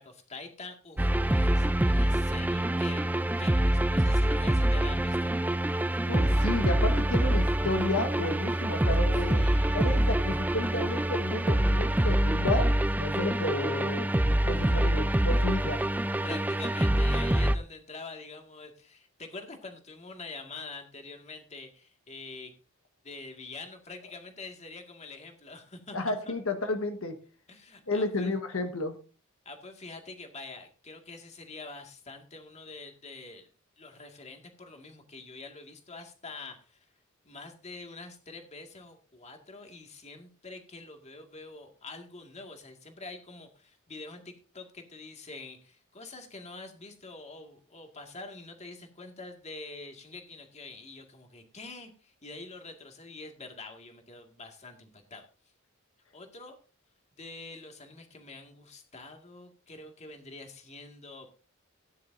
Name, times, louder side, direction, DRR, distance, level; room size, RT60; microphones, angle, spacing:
voice 1, 0.0-3.1 3.4-5.3 9.3-10.1 15.7-22.5 23.0-26.3 27.5-28.3 29.5-33.5 33.8-36.9 37.2-55.3 56.1-56.6 57.1-61.3, left 3 dB, 35° left, 4 dB, 2.1 m, -45 dB
sound 1, 1.0-17.6, right 1 dB, 10° right, 0.5 m, -25 dB
voice 2, 6.1-9.4 9.7-12.7 13.0-14.1 14.4-15.8 25.9-27.1 27.9-29.0, left 2 dB, 75° left, 5 dB, 1.5 m, -32 dB
17.0 x 10.0 x 2.7 m, 0.36 s
head